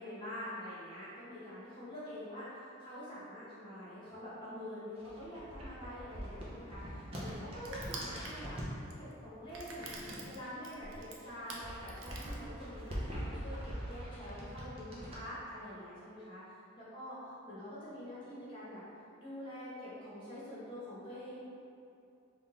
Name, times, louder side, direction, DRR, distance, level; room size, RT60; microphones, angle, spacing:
voice 1, 0.0-2.5 2.8-16.4 16.8-18.8 19.2-21.4, equal, 25° left, -11 dB, 1.2 m, -46 dB
sound 1, 4.9-8.8 9.5-10.8 11.1-15.2, equal, 30° right, 0.6 m, -43 dB
Crushing, 6.1-12.9, right 3 dB, 65° right, 0.5 m, -49 dB
3.6 x 2.4 x 3.9 m, 2.6 s
head